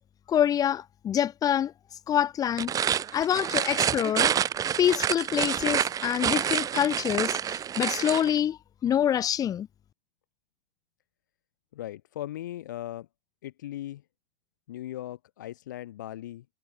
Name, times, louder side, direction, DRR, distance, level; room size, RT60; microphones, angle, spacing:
voice 1, 0.3-1.7 2.1-2.8 3.1-4.3 4.8-9.7, left 10 dB, 40° left, 3.5 m, -26 dB
sound 1, 2.5-8.3, right 9 dB, 35° right, 5.4 m, -28 dB
voice 2, 11.7-13.1 13.4-14.0 14.7-16.5, left 13 dB, 85° left, 3.5 m, -38 dB
hypercardioid pair, 90°, 10 cm